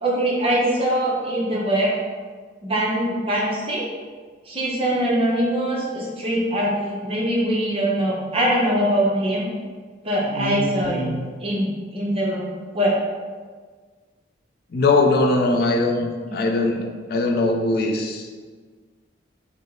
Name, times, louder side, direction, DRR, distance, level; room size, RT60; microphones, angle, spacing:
voice 1, 0.0-1.9 2.6-3.9 4.5-9.5 10.0-11.0 11.4-12.5 12.7-12.9 16.2-16.4, right 1 dB, 30° right, -5 dB, 0.7 m, -22 dB
voice 2, 10.4-11.2 14.7-18.3, left 2 dB, 50° left, 3 dB, 0.4 m, -21 dB
5.1 x 2.0 x 3.6 m, 1.5 s
head